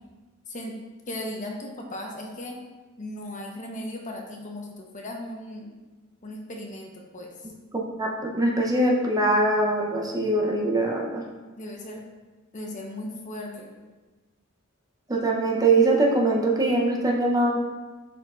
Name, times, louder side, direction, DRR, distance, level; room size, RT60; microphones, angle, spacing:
voice 1, 1.1-2.6 3.0-5.7 6.2-7.5 11.5-12.0 12.5-13.7, left 1 dB, 35° left, 1 dB, 0.9 m, -37 dB
voice 2, 7.7-11.2 15.1-17.6, right 2 dB, 15° right, -1 dB, 0.6 m, -22 dB
10.5 x 4.3 x 2.4 m, 1.2 s
head